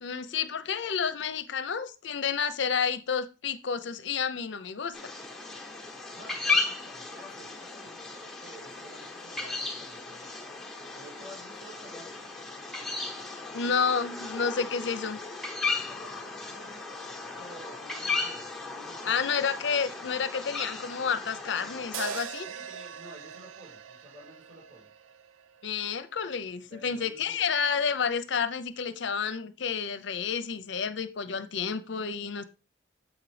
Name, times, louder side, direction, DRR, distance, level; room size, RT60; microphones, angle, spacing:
voice 1, 0.0-5.1 13.5-15.2 19.0-22.5 25.6-32.4, left 6 dB, 65° left, 12 dB, 0.6 m, -30 dB
sound 1, 4.9-22.2, left 4 dB, ahead, 0.9 m, -35 dB
voice 2, 6.1-10.3 10.9-12.2 15.8-17.0 17.4-19.6 22.4-24.9 26.7-27.5, right 1 dB, 70° right, -2 dB, 2.8 m, -51 dB
sound 2, 21.9-26.2, right 7 dB, 85° right, 0.4 m, -42 dB
7.3 x 5.0 x 3.2 m, 0.30 s
head